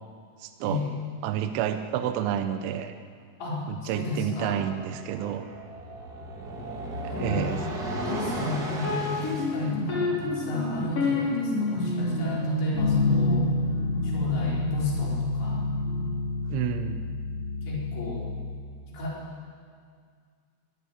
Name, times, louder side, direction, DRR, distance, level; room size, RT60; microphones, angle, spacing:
voice 1, 0.4-0.8 1.2-2.9 3.7-5.5 7.2-7.6 16.5-17.0, right 10 dB, 75° right, 8 dB, 3.2 m, -29 dB
voice 2, 3.4-4.6 7.1-7.5 8.0-13.5 14.0-15.6 16.7-17.1 17.6-18.3 18.9-19.2, left 3 dB, 65° left, -4 dB, 6.7 m, -33 dB
sound 1, 4.1-9.5, right 1 dB, 35° right, 1.7 m, -35 dB
sound 2, 8.8-18.6, left 2 dB, 30° left, 5.4 m, -28 dB
24.0 x 16.5 x 9.7 m, 2.1 s
omnidirectional pair, 5.7 m